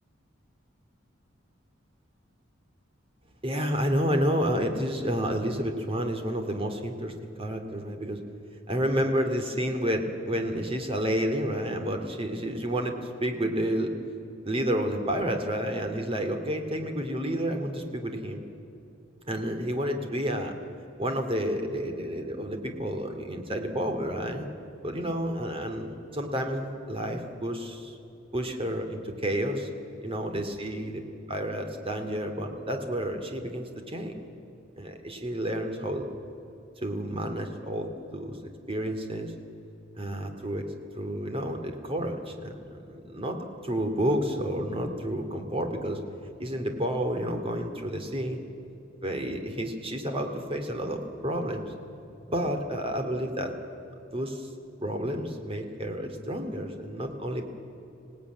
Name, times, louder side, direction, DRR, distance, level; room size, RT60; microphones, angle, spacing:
voice 1, 3.4-8.2 8.7-12.9 13.2-14.0 14.4-18.4 19.3-20.5 21.0-24.5 24.8-28.0 28.3-29.6 30.0-31.0 31.3-34.2 34.8-36.1 36.8-39.3 40.0-40.6 41.0-46.0 46.4-48.4 49.0-51.7 52.3-53.5 54.1-54.5 54.8-57.5, equal, 30° right, 5 dB, 2.4 m, -30 dB
26.0 x 17.5 x 9.3 m, 3.0 s
head